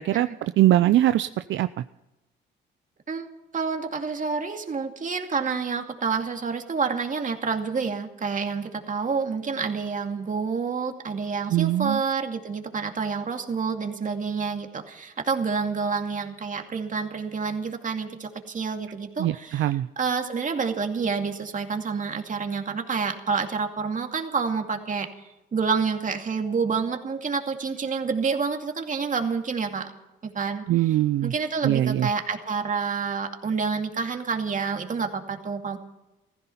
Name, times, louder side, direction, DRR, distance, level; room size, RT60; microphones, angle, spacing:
voice 1, 0.0-1.7 11.5-12.0 19.2-19.9 30.7-31.3 31.6-32.1, right 13 dB, 70° right, 12 dB, 0.5 m, -22 dB
voice 2, 3.5-19.7 20.0-25.1 25.5-29.9 30.2-30.6 31.2-35.8, right 5 dB, 40° right, 4 dB, 2.4 m, -28 dB
15.5 x 15.0 x 5.7 m, 0.98 s
cardioid pair, 90°, 20 cm